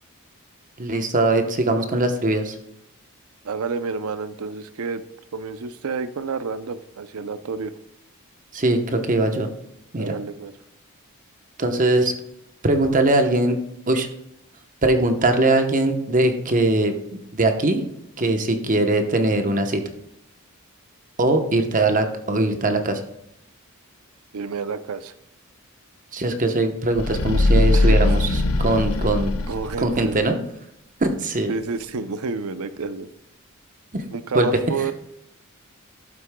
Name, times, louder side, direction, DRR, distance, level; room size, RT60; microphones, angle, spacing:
voice 1, 0.8-2.6 8.5-9.5 9.9-10.1 11.6-12.1 12.6-13.6 13.9-14.1 14.8-16.9 17.3-17.8 18.2-19.8 21.2-23.0 26.1-29.3 29.8-30.4 31.0-31.5 33.9-34.0 34.3-34.5, right 2 dB, 35° right, 6 dB, 1.0 m, -21 dB
voice 2, 3.4-5.0 5.3-7.7 10.0-10.5 24.3-25.1 27.7-28.0 29.5-30.2 31.5-33.1 34.1-34.9, right 4 dB, 80° right, 13 dB, 0.6 m, -29 dB
sound 1, 26.9-30.2, left 2 dB, 85° left, 0.8 m, -20 dB
12.0 x 8.3 x 2.3 m, 0.79 s
head